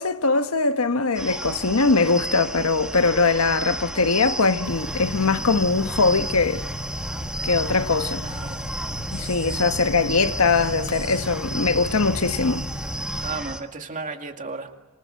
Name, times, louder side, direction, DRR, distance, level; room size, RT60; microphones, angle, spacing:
voice 1, 0.0-6.6 7.4-8.3 9.1-12.7, left 3 dB, 90° left, 1.2 m, -21 dB
sound 1, 1.1-13.6, right 1 dB, 5° right, 1.5 m, -33 dB
sound 2, 4.6-13.3, left 1 dB, 55° left, 3.4 m, -35 dB
voice 2, 8.2-8.7 13.2-14.7, right 4 dB, 35° right, 2.3 m, -34 dB
29.5 x 27.0 x 7.6 m
head